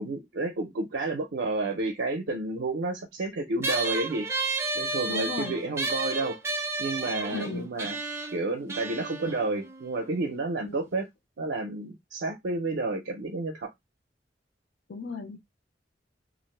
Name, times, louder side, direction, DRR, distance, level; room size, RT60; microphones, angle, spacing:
voice 1, 0.0-4.3 4.7-6.4 6.8-8.0 8.3-11.1 11.4-13.7, right 2 dB, 65° right, 0.5 m, -30 dB
sound 1, 3.6-10.4, right 3 dB, 15° right, 0.5 m, -33 dB
voice 2, 5.1-5.6 7.3-7.8 10.6-10.7 14.9-15.4, left 4 dB, 85° left, 0.5 m, -35 dB
2.4 x 2.0 x 3.1 m
head